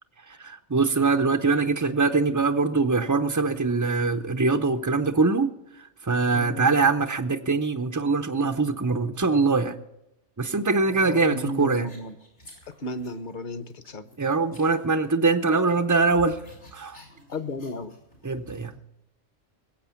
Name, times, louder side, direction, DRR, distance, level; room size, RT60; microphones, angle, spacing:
voice 1, 0.3-5.5 6.0-9.8 10.4-11.9 14.2-16.4 16.7-17.0 18.2-18.7, right 4 dB, 30° right, 6 dB, 0.3 m, -23 dB
voice 2, 6.3-6.8 10.9-12.2 12.8-14.1 17.3-17.9, left 2 dB, 45° left, 12 dB, 0.9 m, -34 dB
sound 1, 11.5-13.3 13.7-15.4 15.6-18.8, equal, 85° left, 5.7 m, -50 dB
20.5 x 8.2 x 7.0 m, 0.87 s
omnidirectional pair, 1.3 m